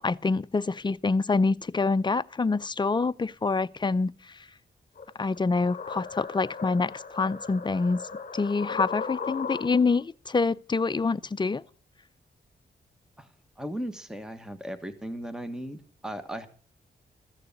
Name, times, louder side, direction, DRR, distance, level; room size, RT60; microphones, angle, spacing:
voice 1, 0.0-4.3 5.2-8.0 8.3-11.6, left 4 dB, 25° left, 0.5 m, -26 dB
sound 1, 5.0-10.0, left 5 dB, 50° left, 1.2 m, -37 dB
voice 2, 13.6-16.5, equal, 5° right, 1.4 m, -37 dB
14.5 x 6.7 x 8.2 m
cardioid pair, 80°, 18 cm